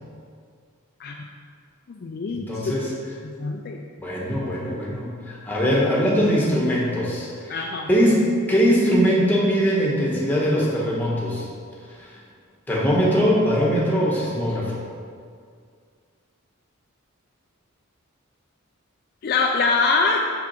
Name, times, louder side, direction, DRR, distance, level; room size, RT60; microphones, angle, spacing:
voice 1, 1.9-2.6 3.2-3.8 7.5-7.9 19.2-20.3, left 4 dB, 45° left, 1 dB, 0.4 m, -23 dB
voice 2, 2.5-2.9 4.0-8.2 8.5-11.5 12.0-12.1 12.7-14.8, equal, 10° left, -4 dB, 1.2 m, -21 dB
6.1 x 5.7 x 4.3 m, 2.1 s
head